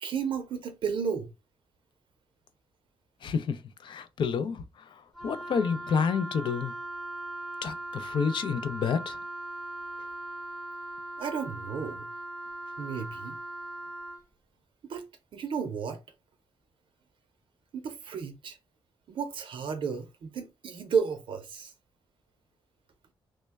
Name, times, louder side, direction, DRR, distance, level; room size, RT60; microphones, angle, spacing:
voice 1, 0.0-1.3 11.2-12.1 12.8-13.3 14.9-15.0 15.3-16.0 17.7-18.6 19.1-21.7, right 6 dB, 60° right, 0.5 m, -33 dB
voice 2, 3.2-4.6 5.2-6.7 7.6-9.2, left 6 dB, 55° left, 0.4 m, -29 dB
Wind instrument woodwind instrument, 5.1-14.2, right 1 dB, ahead, 0.7 m, -39 dB
3.1 x 2.1 x 3.3 m
wide cardioid pair, 160°, 10 cm